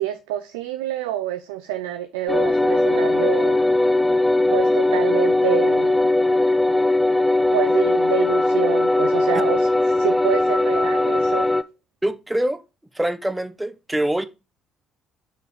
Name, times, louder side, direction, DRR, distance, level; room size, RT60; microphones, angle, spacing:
voice 1, 0.0-3.6 4.5-6.1 7.5-9.7 9.9-11.5, right 12 dB, 70° right, 0.5 m, -27 dB
sound 1, 2.3-11.6, left 2 dB, 10° left, 0.6 m, -19 dB
voice 2, 12.0-12.6 12.9-14.3, right 1 dB, 10° right, 0.9 m, -24 dB
6.2 x 5.1 x 4.7 m
figure-of-eight pair, 50°, 0 cm